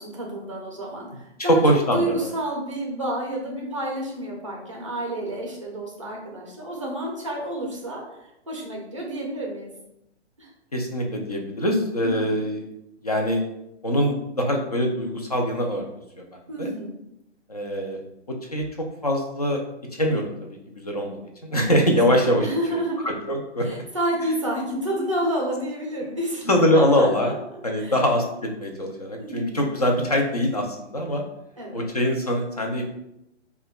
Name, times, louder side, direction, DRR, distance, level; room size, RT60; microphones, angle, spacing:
voice 1, 0.0-9.7 10.4-10.5 12.0-12.4 16.5-17.0 21.7-21.9 22.4-23.1 23.6-27.3 27.8-28.0 29.2-29.7 31.6-31.9, right 1 dB, 30° right, -2 dB, 0.5 m, -30 dB
voice 2, 1.5-2.3 10.7-12.6 13.0-13.4 13.8-15.9 16.2-16.3 16.6-16.7 17.5-18.0 18.3-18.7 19.0-19.6 20.0-20.5 20.8-22.5 23.0-23.7 26.5-27.3 27.6-31.2 31.7-32.8, equal, 35° left, 2 dB, 0.4 m, -23 dB
4.7 x 2.2 x 2.3 m, 0.84 s
hypercardioid pair, 170°, 35 cm